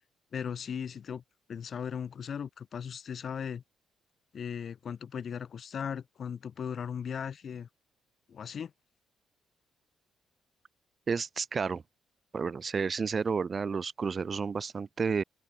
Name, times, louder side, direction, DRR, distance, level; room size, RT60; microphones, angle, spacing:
voice 1, 0.3-1.2 1.5-3.6 4.3-7.7 8.3-8.7, left 7 dB, 55° left, 6.2 m, -37 dB
voice 2, 11.1-11.8 12.3-15.2, right 5 dB, 40° right, 4.1 m, -31 dB
open air
cardioid pair, 90°, 0 cm